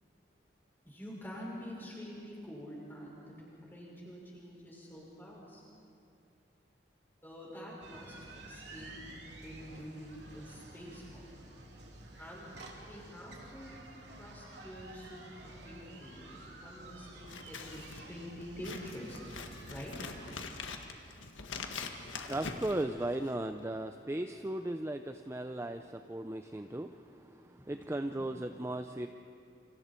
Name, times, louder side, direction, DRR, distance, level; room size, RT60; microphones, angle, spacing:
voice 1, 0.8-5.6 7.2-11.2 12.2-12.5 12.9-13.8 14.2-19.2 19.7-19.9 27.6-28.3, equal, 10° left, -4 dB, 5.8 m, -47 dB
sound 1, 7.8-20.5, right 2 dB, 65° right, 2.9 m, -51 dB
Scissors, 17.2-23.5, left 4 dB, 90° left, 1.6 m, -44 dB
voice 2, 22.1-29.1, right 1 dB, 15° right, 7 dB, 0.5 m, -37 dB
28.5 x 26.0 x 4.5 m, 2.6 s
head